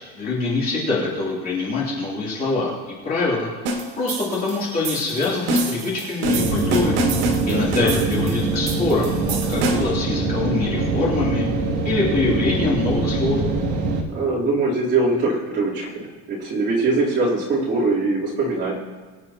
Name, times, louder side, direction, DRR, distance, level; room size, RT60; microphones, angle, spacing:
voice 1, 0.2-3.5 4.0-7.0 7.5-11.4 11.8-13.4, left 3 dB, 25° left, -6 dB, 3.2 m, -24 dB
sound 1, 3.7-10.0, right 1 dB, 85° right, 1.9 m, -26 dB
sound 2, 6.2-14.0, right 3 dB, 55° right, 2.0 m, -23 dB
voice 2, 7.4-7.9 14.1-18.7, right 3 dB, 30° right, -7 dB, 3.5 m, -22 dB
23.0 x 9.0 x 2.9 m, 1.4 s
cardioid pair, 175°, 34 cm